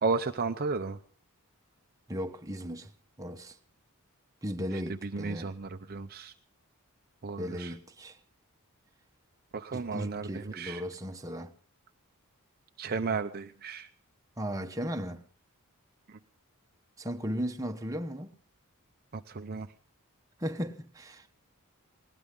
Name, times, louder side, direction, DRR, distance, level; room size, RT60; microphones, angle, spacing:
voice 1, 0.0-1.0 4.7-6.3 7.2-7.7 9.5-10.8 12.8-13.9 16.1-16.2 19.1-19.7, right 4 dB, 45° right, 0.6 m, -34 dB
voice 2, 2.1-2.9 3.2-3.6 4.4-5.5 7.4-8.2 9.7-11.5 14.4-15.2 17.0-18.4 20.4-21.3, equal, 15° right, 1.1 m, -36 dB
20.0 x 18.0 x 3.7 m
head